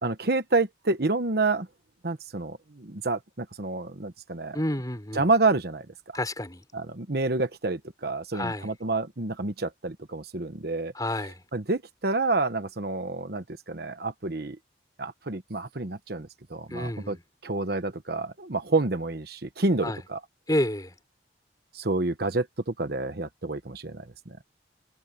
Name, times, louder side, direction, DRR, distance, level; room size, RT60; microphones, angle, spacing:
voice 1, 0.0-1.7 2.0-4.6 5.1-6.2 6.7-10.9 11.5-14.6 15.0-17.2 17.4-20.2 21.7-24.4, right 3 dB, 55° right, 1.2 m, -28 dB
voice 2, 4.5-5.2 6.1-6.6 8.3-8.7 10.9-11.4 16.7-17.2 19.8-20.0 20.5-20.9, left 1 dB, 20° left, 4.2 m, -29 dB
head